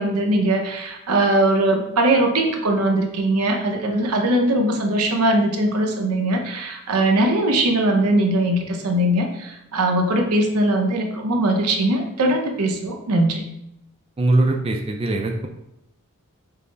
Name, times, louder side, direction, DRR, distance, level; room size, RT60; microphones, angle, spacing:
voice 1, 0.0-13.4, right 1 dB, 90° right, 2 dB, 0.7 m, -20 dB
voice 2, 14.2-15.5, right 2 dB, 25° right, 2 dB, 0.4 m, -21 dB
5.5 x 2.0 x 3.8 m, 0.86 s
head